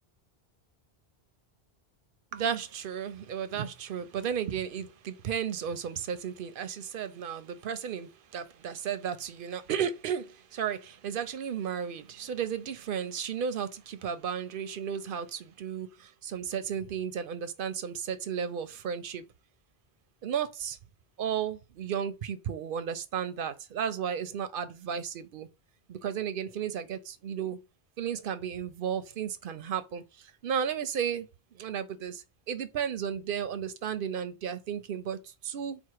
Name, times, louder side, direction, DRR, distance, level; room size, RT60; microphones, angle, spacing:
voice 1, 2.3-19.2 20.2-20.8 21.2-25.5 25.9-27.6 28.0-31.3 31.5-35.8, right 8 dB, 65° right, 0.7 m, -34 dB
4.5 x 2.0 x 4.6 m
omnidirectional pair, 1.1 m